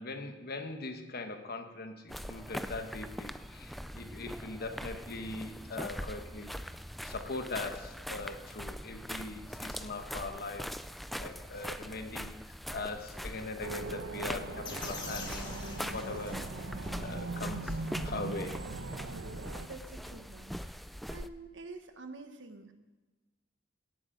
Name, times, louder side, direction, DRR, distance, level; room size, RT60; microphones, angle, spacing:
voice 1, 0.0-6.5 7.0-10.7 11.2-15.5 15.9-16.5 17.0-18.6, left 3 dB, 50° left, 7 dB, 1.2 m, -41 dB
sound 1, 2.1-21.3, equal, ahead, 0.3 m, -42 dB
Bus - Polish 'Solaris', 13.6-19.7, right 3 dB, 90° right, 0.9 m, -40 dB
sound 2, 14.6-16.8, left 3 dB, 25° left, 2.1 m, -44 dB
voice 2, 19.6-22.7, right 3 dB, 70° right, 7 dB, 1.3 m, -48 dB
17.0 x 8.8 x 5.2 m, 1.2 s
head